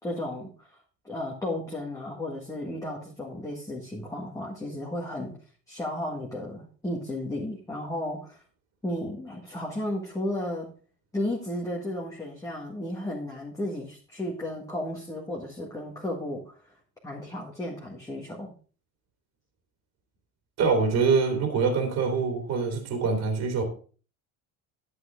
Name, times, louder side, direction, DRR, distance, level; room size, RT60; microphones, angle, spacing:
voice 1, 0.0-0.8 1.0-5.4 5.7-8.4 8.8-10.7 11.1-16.7 17.0-18.5, left 1 dB, 10° left, -3 dB, 1.8 m, -34 dB
voice 2, 20.6-23.6, right 5 dB, 45° right, 3 dB, 2.8 m, -24 dB
11.0 x 9.3 x 3.7 m, 0.39 s
cardioid pair, 155°, 36 cm